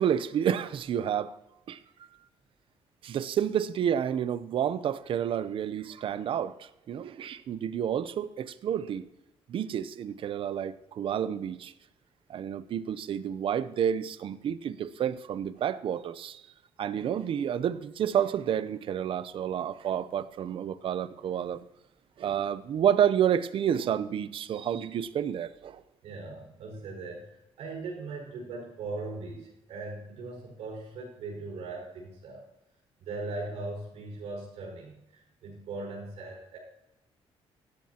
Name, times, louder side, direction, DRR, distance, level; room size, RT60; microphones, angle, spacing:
voice 1, 0.0-1.4 1.7-1.8 3.0-9.1 9.5-11.7 12.3-16.4 16.8-21.6 22.2-25.8, right 9 dB, 60° right, 0.6 m, -29 dB
voice 2, 26.0-32.4 33.0-36.6, right 3 dB, 90° right, 5.2 m, -39 dB
16.0 x 12.5 x 2.9 m
cardioid pair, 135°, 10 cm